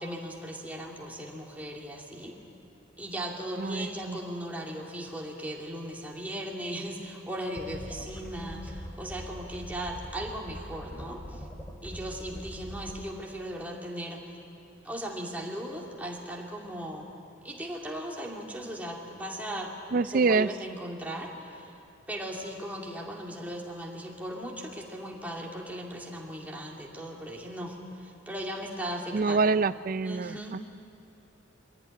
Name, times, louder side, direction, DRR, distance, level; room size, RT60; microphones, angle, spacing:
voice 1, 0.0-2.4 3.0-11.4 11.8-14.2 14.8-17.1 17.4-19.7 20.1-21.7 22.1-29.4 30.0-30.6, right 1 dB, 10° right, -2 dB, 2.7 m, -37 dB
voice 2, 3.6-4.2 19.9-20.5 29.1-30.6, right 4 dB, 45° right, 15 dB, 0.4 m, -26 dB
sound 1, 7.6-13.0, equal, 10° left, 2.4 m, -42 dB
23.5 x 16.5 x 9.8 m, 2.9 s
head